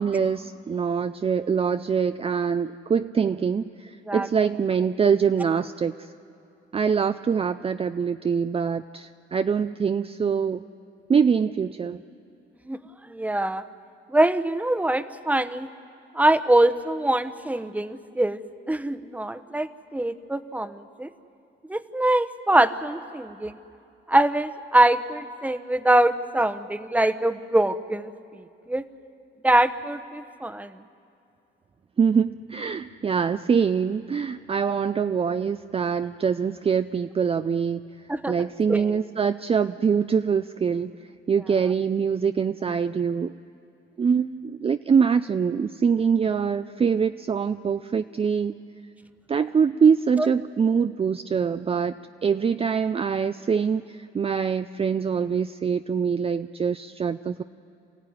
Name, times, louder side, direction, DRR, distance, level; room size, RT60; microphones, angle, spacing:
voice 1, 0.0-6.1 6.7-10.6 11.1-12.0 32.0-37.8 38.3-40.9 41.3-43.3 44.0-48.5 49.3-51.9 52.2-57.4, right 6 dB, 30° right, 10 dB, 0.5 m, -24 dB
voice 2, 13.0-13.6 14.1-15.7 16.1-18.4 18.7-21.1 21.7-23.6 24.1-28.8 29.4-30.7 38.1-38.3 38.7-38.9 50.2-50.3, right 1 dB, 5° right, 10 dB, 1.0 m, -23 dB
28.5 x 15.0 x 9.6 m, 2.6 s
cardioid pair, 90°, 20 cm